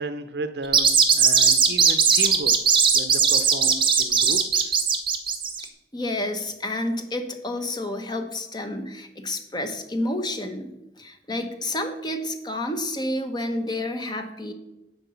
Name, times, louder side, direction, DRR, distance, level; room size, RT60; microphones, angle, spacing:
voice 1, 0.0-2.6 2.9-4.8, right 3 dB, 65° right, 10 dB, 0.7 m, -34 dB
sound 1, 0.6-5.6, right 6 dB, 30° right, 0.9 m, -18 dB
voice 2, 5.9-14.5, left 1 dB, 25° left, 6 dB, 1.0 m, -30 dB
10.0 x 4.6 x 6.9 m, 0.93 s
head